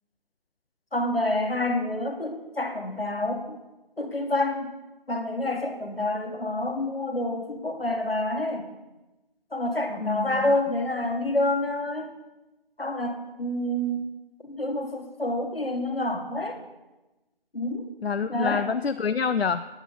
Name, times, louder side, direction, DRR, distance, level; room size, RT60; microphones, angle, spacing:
voice 1, 0.9-3.6 4.0-4.7 5.1-8.7 9.5-12.1 12.8-14.1 14.4-16.6 17.5-17.9 18.3-18.6, left 1 dB, 70° left, 4 dB, 1.7 m, -28 dB
voice 2, 10.0-10.4 18.0-19.7, left 6 dB, 90° left, 12 dB, 0.5 m, -27 dB
9.8 x 9.3 x 5.3 m, 1.1 s
figure-of-eight pair, 180°, 30 cm